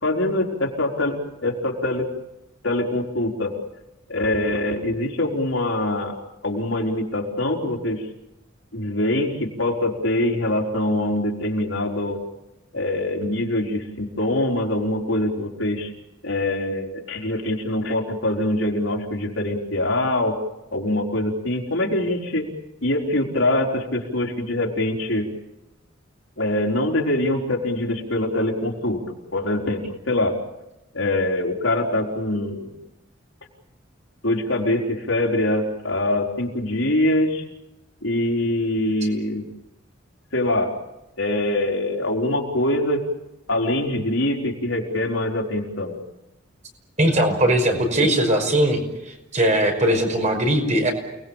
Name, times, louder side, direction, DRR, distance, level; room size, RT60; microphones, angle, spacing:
voice 1, 0.0-2.1 2.6-3.5 4.1-6.1 6.4-8.0 8.7-12.2 12.7-15.9 16.2-20.4 20.7-22.5 22.8-25.3 26.4-29.0 29.3-30.3 30.9-32.7 34.2-37.4 38.0-39.4 40.3-40.7 41.2-43.0 43.5-45.9 48.0-48.1, left 1 dB, 75° left, -1 dB, 4.4 m, -24 dB
voice 2, 47.0-48.8 49.1-50.9, right 1 dB, 35° right, 4 dB, 5.5 m, -20 dB
29.5 x 20.5 x 7.3 m, 0.94 s
head